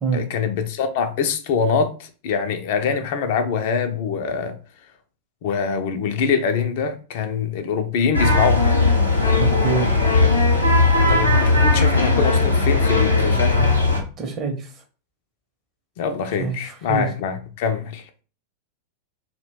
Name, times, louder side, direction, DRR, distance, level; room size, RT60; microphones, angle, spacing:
voice 1, 0.1-4.6 5.4-8.6 10.9-13.7 16.0-18.1, left 6 dB, 50° left, 0.3 m, -24 dB
sound 1, 8.1-14.0, left 3 dB, 90° left, 0.6 m, -17 dB
voice 2, 9.4-9.9 14.2-14.7 16.4-17.1, right 4 dB, 30° right, 0.6 m, -25 dB
2.2 x 2.1 x 3.2 m
figure-of-eight pair, 90°, 0 cm